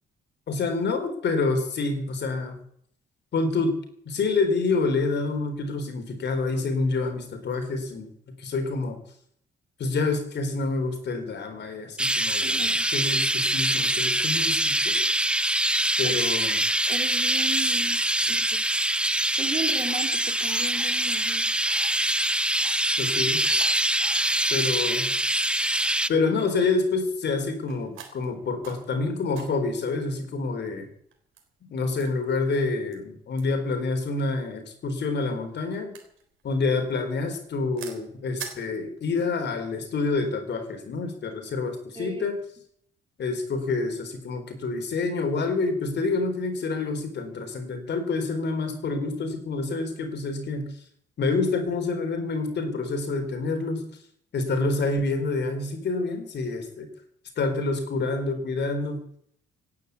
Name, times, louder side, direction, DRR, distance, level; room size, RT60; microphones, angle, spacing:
voice 1, 0.5-2.6 3.3-3.8 4.1-8.1 8.4-9.0 9.8-12.7 12.9-15.0 16.0-16.6 23.0-23.4 24.5-25.1 26.1-30.9 31.7-35.9 36.4-42.4 43.2-50.7 51.2-53.8 54.3-56.9 57.4-59.0, left 3 dB, 60° left, 7 dB, 4.1 m, -27 dB
Chirp tweet, 12.0-26.1, right 1 dB, 5° right, 0.6 m, -24 dB
voice 2, 12.4-12.9 16.0-16.2 16.9-18.0 18.3-18.6 19.4-21.5 42.0-42.3, right 3 dB, 25° right, 5 dB, 3.4 m, -36 dB
sound 1, 20.1-39.4, right 8 dB, 85° right, 3.9 m, -48 dB
17.5 x 9.7 x 8.4 m, 0.66 s
cardioid pair, 90°, 20 cm